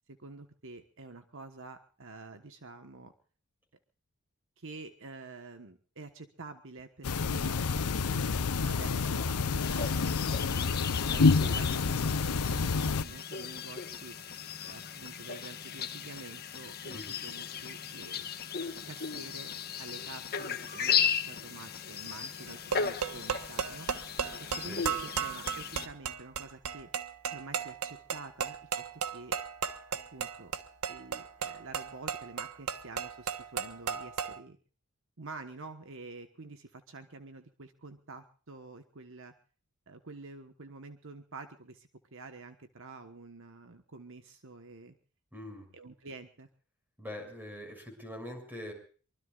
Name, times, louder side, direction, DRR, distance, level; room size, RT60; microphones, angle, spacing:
voice 1, 0.2-3.1 4.6-8.3 8.6-14.2 14.6-18.3 18.9-19.5 19.8-23.9 24.4-26.9 27.3-29.4 30.1-30.5 30.9-34.6 35.2-39.3 39.9-45.0 45.7-46.5, right 3 dB, 60° right, 7 dB, 1.4 m, -48 dB
sound 1, 7.0-13.0, left 4 dB, 85° left, 0.7 m, -28 dB
sound 2, 9.6-25.9, left 7 dB, 45° left, 1.3 m, -36 dB
sound 3, 22.5-34.4, right 7 dB, 80° right, 1.4 m, -35 dB
voice 2, 45.3-45.7 47.0-48.7, left 1 dB, 10° right, 4 dB, 6.5 m, -43 dB
24.0 x 24.0 x 2.5 m, 0.41 s
head